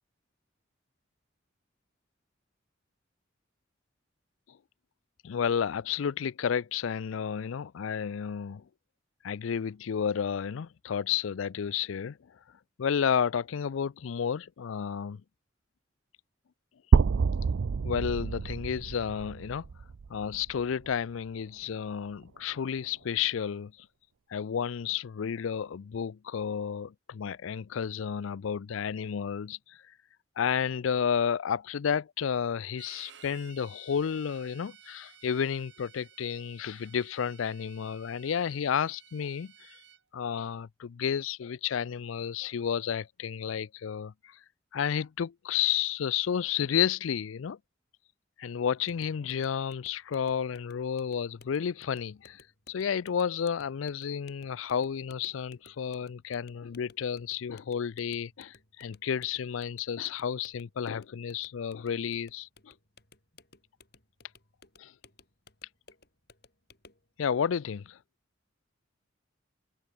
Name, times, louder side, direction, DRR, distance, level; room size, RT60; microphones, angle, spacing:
voice 1, 5.2-8.6 9.2-12.2 12.8-15.2 17.8-19.7 20.1-23.9 24.3-29.8 30.4-39.8 40.1-44.4 44.7-47.6 48.4-62.7 64.8-64.9 67.2-68.0, left 7 dB, 85° left, 0.4 m, -31 dB
sound 1, 16.9-20.9, right 5 dB, 85° right, 0.5 m, -27 dB
Bowed string instrument, 32.8-40.0, right 9 dB, 65° right, 4.1 m, -55 dB
sound 2, 48.9-67.1, left 3 dB, 55° left, 6.9 m, -59 dB
head